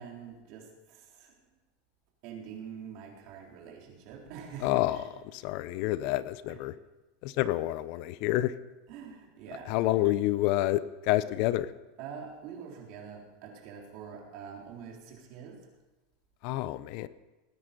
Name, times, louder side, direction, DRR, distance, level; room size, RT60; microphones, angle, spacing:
voice 1, 0.0-1.4 2.2-5.1 6.5-6.6 8.9-9.7 12.0-15.6, right 7 dB, 55° right, 0 dB, 3.8 m, -45 dB
voice 2, 4.6-6.7 7.2-8.5 9.6-11.7 16.4-17.1, left 15 dB, 55° left, 16 dB, 0.6 m, -28 dB
19.5 x 10.0 x 5.3 m, 1.1 s
supercardioid pair, 135°, 0 cm